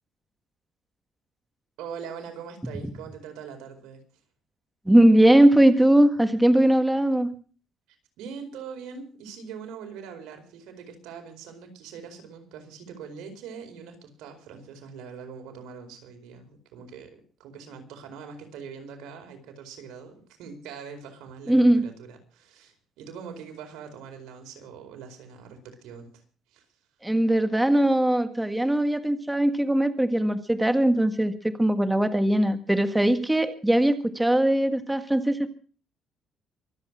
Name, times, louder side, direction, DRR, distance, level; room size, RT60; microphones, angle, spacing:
voice 1, 1.8-4.0 8.2-26.2 26.5-26.6, right 6 dB, 90° right, 5 dB, 4.6 m, -42 dB
voice 2, 4.8-7.3 21.5-21.9 27.0-35.5, right 1 dB, 10° right, 9 dB, 1.6 m, -20 dB
24.5 x 8.4 x 6.1 m, 0.41 s
cardioid pair, 100°, 0 cm